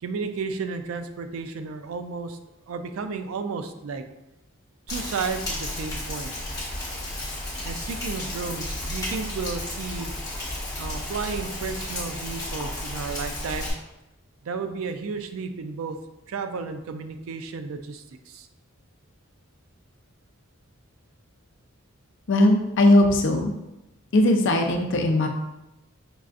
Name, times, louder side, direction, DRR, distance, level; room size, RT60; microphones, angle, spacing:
voice 1, 0.0-2.4 2.7-4.0 4.9-6.4 7.6-10.1 10.8-13.7 14.4-16.0 16.3-18.5, right 4 dB, 75° right, 8 dB, 0.4 m, -33 dB
Rain, 4.9-13.7, left 1 dB, 20° left, 1.2 m, -33 dB
voice 2, 22.3-23.5 24.1-25.3, left 1 dB, 60° left, 4 dB, 0.5 m, -19 dB
5.3 x 2.4 x 2.4 m, 0.94 s
head